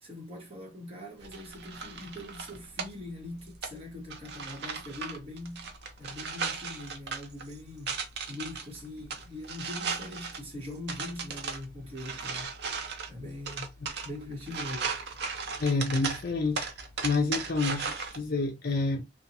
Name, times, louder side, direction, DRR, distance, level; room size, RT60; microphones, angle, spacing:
voice 1, 0.0-5.7 6.0-8.0 8.3-12.5 13.1-13.7 14.0-14.9, left 1 dB, 30° right, 1.1 m, -42 dB
sound 1, 1.2-18.2, right 5 dB, 55° right, 0.6 m, -38 dB
voice 2, 15.6-16.7 17.0-19.0, left 3 dB, 50° left, 0.5 m, -28 dB
2.8 x 2.2 x 2.7 m
head